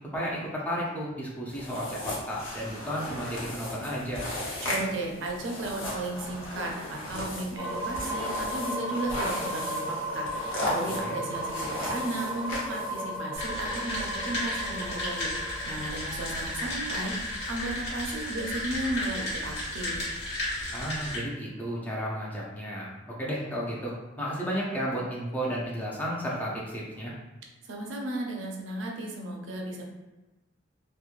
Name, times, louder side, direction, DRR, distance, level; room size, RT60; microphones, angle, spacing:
voice 1, 0.1-4.2 11.0-11.1 20.7-27.1, equal, 10° left, -5 dB, 0.4 m, -33 dB
sound 1, 1.5-13.2, left 1 dB, 75° left, 0.8 m, -36 dB
voice 2, 4.6-20.1 27.6-29.8, right 2 dB, 70° right, 0 dB, 0.5 m, -35 dB
sound 2, 7.6-19.4, right 1 dB, 35° left, 1.2 m, -36 dB
sound 3, 13.3-21.2, left 1 dB, 60° left, 1.2 m, -33 dB
3.0 x 2.1 x 2.4 m, 1.1 s
head